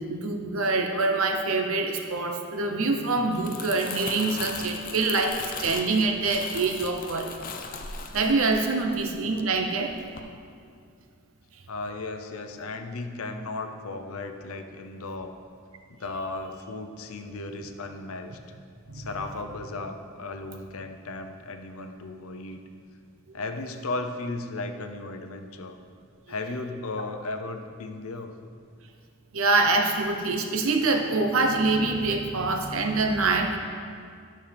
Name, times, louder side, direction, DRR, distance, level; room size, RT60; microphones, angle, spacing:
voice 1, 0.0-7.3 8.1-9.9 18.9-19.1 29.3-33.6, right 3 dB, 70° right, 4 dB, 0.8 m, -25 dB
Crumpling crinkling, 3.2-9.6 9.9-10.2, left 5 dB, 40° left, 0.5 m, -38 dB
voice 2, 11.7-15.3 15.9-18.4 18.9-22.6 23.3-25.8 26.3-28.3, left 2 dB, 80° left, 6 dB, 0.7 m, -35 dB
11.0 x 6.4 x 3.4 m, 2.3 s
head